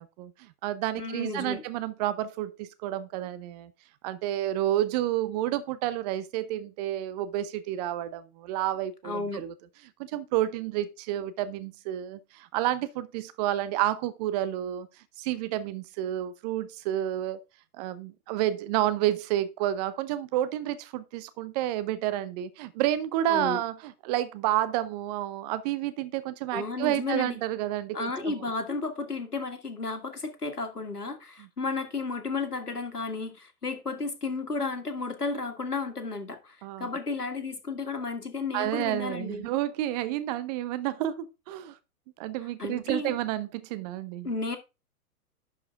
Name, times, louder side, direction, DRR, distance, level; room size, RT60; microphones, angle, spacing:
voice 1, 0.0-3.7 4.0-9.5 10.0-14.9 15.2-17.4 17.7-28.3 31.4-31.5 36.6-36.9 38.5-41.7 42.2-44.3, right 13 dB, 30° right, 0.8 m, -30 dB
voice 2, 1.0-1.6 9.0-9.4 23.3-23.6 26.5-27.4 27.9-39.5 42.6-43.1 44.2-44.6, left 4 dB, 85° left, 2.0 m, -33 dB
11.0 x 4.9 x 3.6 m
figure-of-eight pair, 115°, 45 cm